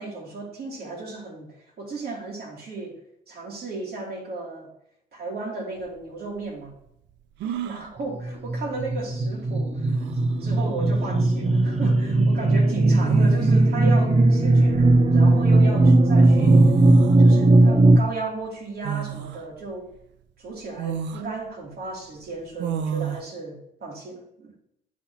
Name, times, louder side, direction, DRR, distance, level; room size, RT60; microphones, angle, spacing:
voice 1, 0.0-1.5 1.8-3.0 3.3-4.7 5.1-6.7 7.6-10.0 10.4-16.6 17.2-19.9 20.4-24.5, right 3 dB, 60° right, -2 dB, 2.6 m, -35 dB
sound 1, 5.8-5.9 7.4-7.9 9.4-9.5 9.9-10.4 11.7-11.9 13.0-13.7 14.4-15.4 16.1-16.2 16.3-17.2 18.8-19.4 20.0-20.1 20.8-21.3 22.6-23.2, right 9 dB, 80° right, 0.5 m, -30 dB
sound 2, 8.2-18.0, right 2 dB, 35° right, 0.7 m, -18 dB
11.0 x 4.1 x 2.8 m, 0.76 s
supercardioid pair, 70°, 18 cm